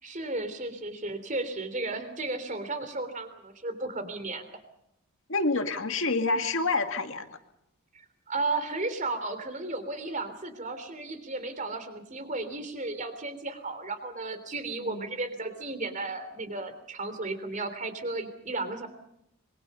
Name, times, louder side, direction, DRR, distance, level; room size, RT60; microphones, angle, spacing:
voice 1, 0.0-4.5 8.3-18.9, right 2 dB, 35° right, 10 dB, 3.4 m, -34 dB
voice 2, 5.3-7.4 14.8-15.1, left 3 dB, 60° left, 6 dB, 2.3 m, -28 dB
26.0 x 23.0 x 5.6 m, 0.76 s
head